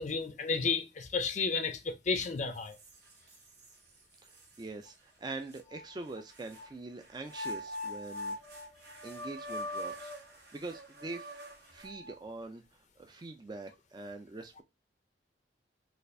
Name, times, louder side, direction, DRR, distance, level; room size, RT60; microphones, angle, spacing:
voice 1, 0.0-2.8, left 4 dB, 40° left, 0.5 m, -32 dB
sound 1, 2.2-2.3 2.8-3.7 4.3-4.4 5.5-6.7 7.2-12.2, left 1 dB, 60° right, 1.0 m, -42 dB
voice 2, 4.2-8.4 9.0-11.4 11.7-12.6 13.0-14.6, right 2 dB, 25° right, 0.3 m, -44 dB
4.1 x 2.4 x 2.5 m
head